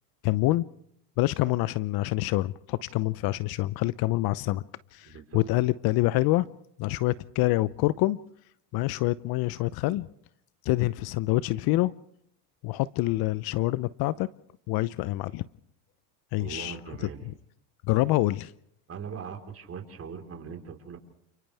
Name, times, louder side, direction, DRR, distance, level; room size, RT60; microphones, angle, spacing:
voice 1, 0.2-0.6 1.2-4.6 4.9-6.4 6.8-8.2 8.7-10.1 10.6-11.9 12.6-14.3 14.7-15.5 16.3-16.8 17.9-18.5, left 18 dB, 50° left, 18 dB, 0.7 m, -26 dB
voice 2, 5.0-5.4 16.4-17.3 18.9-21.0, right 6 dB, 30° right, 4 dB, 4.3 m, -40 dB
29.5 x 28.0 x 3.4 m, 0.70 s
supercardioid pair, 105°, 47 cm